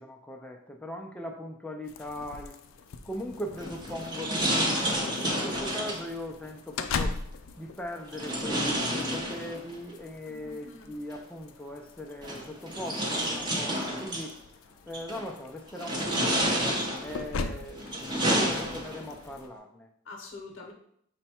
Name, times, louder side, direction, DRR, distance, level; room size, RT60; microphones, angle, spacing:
voice 1, 0.0-2.5 3.0-7.2 7.6-14.4 14.9-16.6 17.0-19.9, left 1 dB, 5° left, 1 dB, 0.3 m, -39 dB
sound 1, 1.8-19.5, left 4 dB, 85° left, 0.4 m, -41 dB
sound 2, 3.6-6.1 8.1-9.8 11.1-11.2 12.2-14.3 14.9-15.3 15.7-17.2 17.7-19.1, equal, 20° right, 0.7 m, -30 dB
voice 2, 10.3-10.9 18.0-18.4 20.1-20.7, left 3 dB, 65° left, 1 dB, 0.8 m, -46 dB
5.3 x 2.2 x 4.2 m, 0.69 s
head